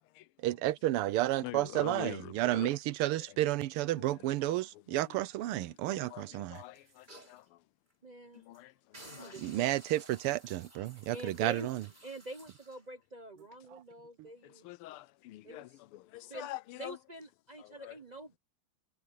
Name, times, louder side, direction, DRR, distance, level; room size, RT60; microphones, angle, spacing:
voice 1, 0.4-6.6 9.4-11.8 14.2-14.3, right 15 dB, 90° right, 1.6 m, -31 dB
voice 2, 1.4-2.7 3.3-3.4 3.9-5.2 5.5-7.6 8.4-8.7 9.2-9.4 14.4-17.0 17.6-18.0, left 16 dB, 85° left, 1.5 m, -46 dB
sound 1, 6.5-7.4 7.9-8.0 8.3-8.6 8.9-12.8 13.4-13.5, right 1 dB, 20° right, 6.6 m, -55 dB
voice 3, 8.0-8.4 9.2-9.7 11.1-11.7 12.0-14.7 15.4-15.7 16.2-16.5 16.7-18.4, right 1 dB, 45° right, 0.5 m, -46 dB
omnidirectional pair, 2.4 m